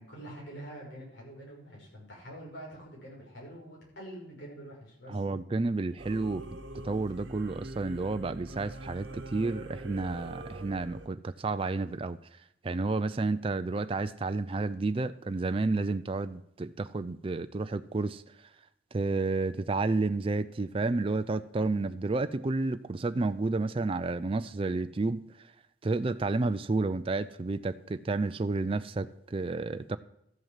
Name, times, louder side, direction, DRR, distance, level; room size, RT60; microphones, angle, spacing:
voice 1, 0.0-5.2, right 1 dB, 60° left, 6.0 m, -46 dB
voice 2, 5.1-6.6 6.8-12.4 12.6-18.5 18.9-25.5 25.8-30.0, right 3 dB, 25° right, 0.4 m, -31 dB
Singing / Musical instrument, 6.0-11.1, right 1 dB, 60° right, 1.2 m, -44 dB
13.5 x 8.0 x 7.4 m
head